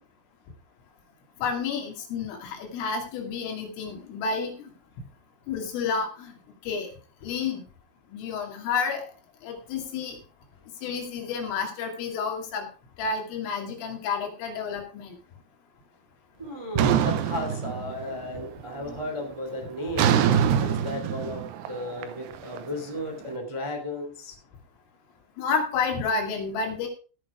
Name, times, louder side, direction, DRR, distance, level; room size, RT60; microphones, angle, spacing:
voice 1, 1.4-4.7 5.5-6.3 6.6-6.9 7.2-7.6 8.1-9.0 9.4-10.2 10.8-12.7 13.0-15.2 25.4-26.9, left 5 dB, 80° left, 3 dB, 5.0 m, -30 dB
voice 2, 16.4-24.3, equal, 20° right, 2 dB, 0.7 m, -34 dB
sound 1, 16.8-18.3 18.6-19.1 20.0-23.0, right 9 dB, 80° right, 2.5 m, -25 dB
16.5 x 6.8 x 4.8 m, 0.37 s
omnidirectional pair, 5.8 m